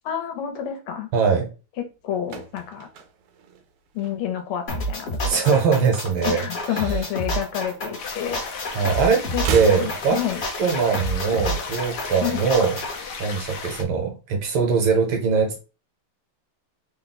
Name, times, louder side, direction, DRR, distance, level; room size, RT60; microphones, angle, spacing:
voice 1, 0.0-1.1 1.8-2.9 3.9-5.4 6.2-8.4 9.3-9.4 9.7-10.4 12.2-12.4, left 10 dB, 80° left, 5 dB, 1.7 m, -29 dB
voice 2, 1.1-1.5 5.2-6.4 6.8-6.9 8.7-9.3 9.5-10.2 10.6-12.8 13.2-15.6, right 5 dB, 70° right, 3 dB, 1.7 m, -21 dB
sound 1, 1.9-4.6 4.9-5.2 5.4-6.9 7.2-8.5 8.8-10.9 11.2-11.3, right 5 dB, 90° right, 1.5 m, -34 dB
sound 2, 4.7-13.0, equal, 40° left, 0.9 m, -29 dB
sound 3, 8.0-13.8, left 5 dB, 65° left, 1.1 m, -35 dB
3.9 x 2.2 x 4.0 m, 0.32 s
omnidirectional pair, 2.4 m